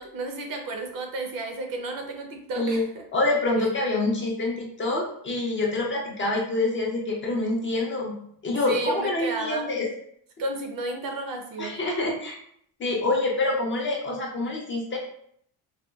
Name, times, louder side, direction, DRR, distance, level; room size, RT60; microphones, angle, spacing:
voice 1, 0.0-3.0 3.6-3.7 8.7-9.8 10.4-11.8, right 2 dB, 55° right, 3 dB, 0.6 m, -32 dB
voice 2, 2.5-2.8 3.1-9.9 11.6-12.3 12.8-15.0, left 2 dB, 30° left, -2 dB, 0.4 m, -26 dB
4.1 x 2.2 x 2.2 m, 0.65 s
cardioid pair, 175°, 42 cm